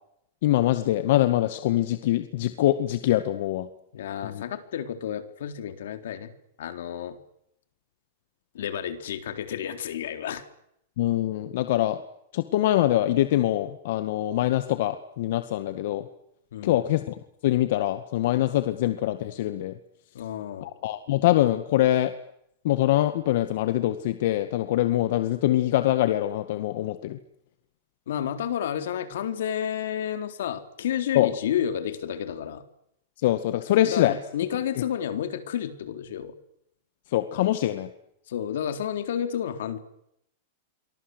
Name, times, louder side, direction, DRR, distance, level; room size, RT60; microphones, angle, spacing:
voice 1, 0.4-3.7 4.2-4.4 11.0-12.0 12.3-16.1 16.6-19.7 20.6-22.1 22.6-27.2 31.1-31.3 33.2-34.2 37.1-37.9, left 14 dB, 55° left, 10 dB, 1.9 m, -24 dB
voice 2, 3.9-6.3 6.6-7.2 8.5-10.4 16.5-16.8 20.1-20.7 28.1-32.6 33.9-36.3 38.3-39.8, left 9 dB, 75° left, 9 dB, 3.9 m, -31 dB
29.5 x 24.5 x 8.1 m, 0.76 s
supercardioid pair, 170°, 0 cm